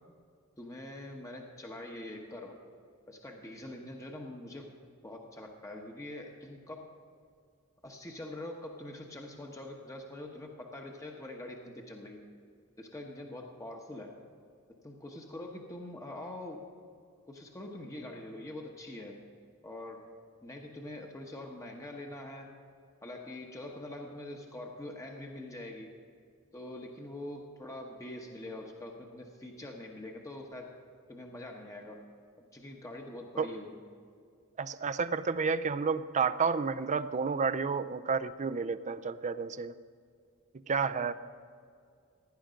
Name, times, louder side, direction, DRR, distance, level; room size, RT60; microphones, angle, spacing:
voice 1, 0.6-2.6 3.1-4.7 5.0-6.9 7.8-12.2 12.8-14.1 14.8-16.6 17.3-19.2 19.6-20.1 20.4-22.5 23.0-25.9 26.5-30.7 31.1-32.0 32.5-33.8 41.0-41.1, left 1 dB, 15° left, 1 dB, 1.0 m, -44 dB
voice 2, 34.6-39.7 40.7-41.1, right 5 dB, 35° right, 12 dB, 0.5 m, -30 dB
16.5 x 10.5 x 5.1 m, 2.2 s
head